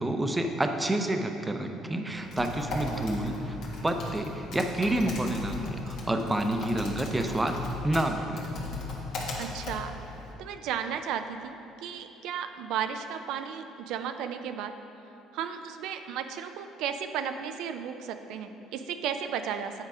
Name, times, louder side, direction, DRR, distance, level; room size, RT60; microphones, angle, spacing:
voice 1, 0.0-3.6 3.8-8.5, right 1 dB, 15° right, 5 dB, 0.6 m, -29 dB
Typing, 2.1-10.3, left 2 dB, 65° left, 1.4 m, -37 dB
voice 2, 9.4-10.0 10.4-14.7 15.3-19.7, right 8 dB, 75° right, 8 dB, 0.4 m, -34 dB
8.3 x 4.7 x 4.9 m, 2.8 s
cardioid pair, 95°, 0 cm